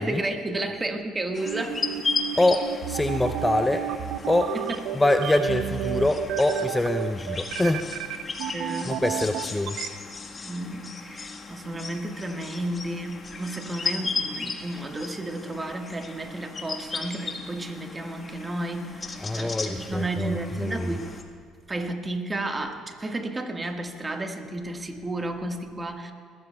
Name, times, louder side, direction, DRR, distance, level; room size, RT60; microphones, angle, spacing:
voice 1, 0.0-1.8 4.5-4.8 8.5-9.0 10.4-21.1 21.7-26.1, right 2 dB, 25° right, 4 dB, 1.6 m, -32 dB
sound 1, 1.3-21.2, left 4 dB, 35° left, 1.4 m, -36 dB
sound 2, 1.5-9.9, right 11 dB, 70° right, 0.5 m, -31 dB
voice 2, 2.4-3.9 4.3-4.6 4.9-8.1 8.8-9.8 19.2-20.9, left 2 dB, 15° left, 7 dB, 0.6 m, -25 dB
21.0 x 15.5 x 2.3 m, 2.1 s
hypercardioid pair, 60°, 0 cm